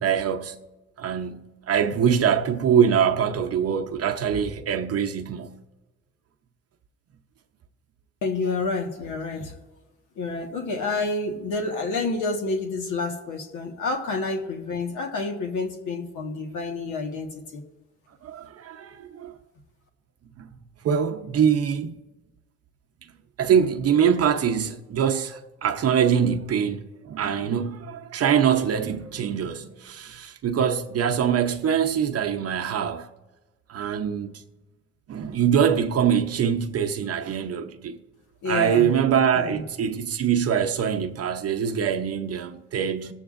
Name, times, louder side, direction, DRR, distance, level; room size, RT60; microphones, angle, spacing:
voice 1, 0.0-0.6 1.0-5.5 18.2-19.3 20.4-20.5 20.8-22.0 23.4-33.1 33.7-34.4 35.1-38.0 38.5-43.1, right 8 dB, 55° right, 0.7 m, -24 dB
voice 2, 8.2-9.5 10.2-17.6 38.4-38.9 39.3-39.6, left 3 dB, 80° left, 1.4 m, -29 dB
19.0 x 7.8 x 2.5 m
cardioid pair, 90°, 30 cm